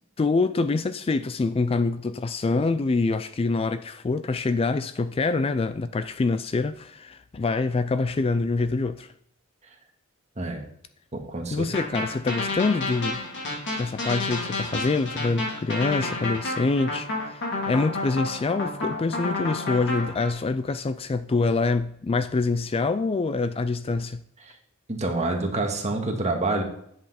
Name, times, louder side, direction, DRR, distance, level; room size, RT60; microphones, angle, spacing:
voice 1, 0.2-9.1 11.5-13.2 13.8-24.2, left 3 dB, 25° left, 0.3 m, -25 dB
voice 2, 11.1-11.7 24.9-26.6, right 2 dB, 30° right, 1.8 m, -27 dB
sound 1, 11.7-20.3, left 2 dB, 55° left, 3.2 m, -30 dB
10.5 x 7.9 x 4.3 m
head